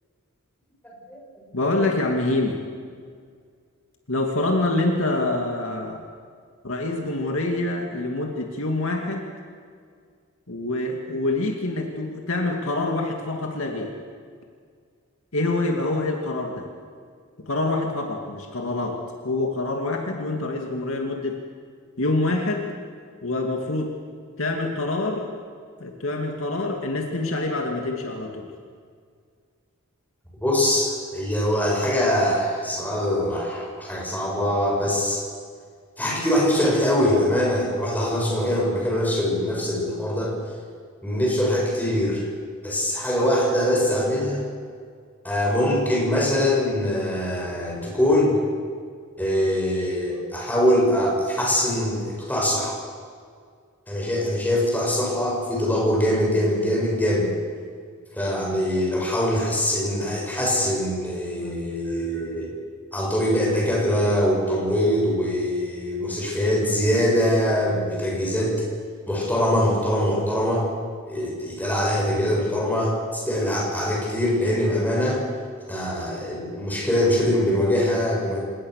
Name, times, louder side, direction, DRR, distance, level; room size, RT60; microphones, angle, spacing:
voice 1, 1.5-2.6 4.1-6.0 6.6-9.3 10.5-13.9 15.3-16.7 17.5-21.4 22.0-22.7 23.2-23.9 24.4-25.3 25.8-28.5, left 2 dB, 65° left, 2 dB, 2.5 m, -26 dB
voice 2, 30.4-35.2 36.0-40.3 41.0-42.3 42.6-44.4 45.2-48.4 49.2-52.8 53.9-57.3 58.1-62.5 62.9-68.6 69.1-70.7 71.1-75.2 75.7-78.4, left 1 dB, 10° left, -3 dB, 7.3 m, -23 dB
27.5 x 19.0 x 6.7 m, 2.1 s
head